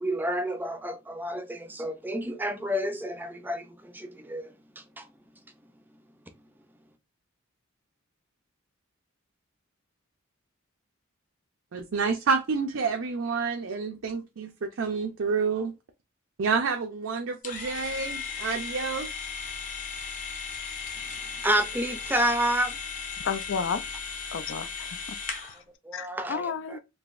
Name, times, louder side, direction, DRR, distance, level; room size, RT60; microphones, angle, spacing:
voice 1, 0.0-5.1 21.4-22.8 25.8-26.8, right 1 dB, 10° right, 0.4 m, -30 dB
voice 2, 11.7-15.7 16.4-19.3, right 5 dB, 65° right, 0.5 m, -29 dB
sound 1, 17.4-25.6, left 5 dB, 40° left, 0.7 m, -36 dB
voice 3, 23.2-23.9 24.3-25.2 25.9-26.8, left 6 dB, 60° left, 0.4 m, -32 dB
3.9 x 2.7 x 2.4 m
head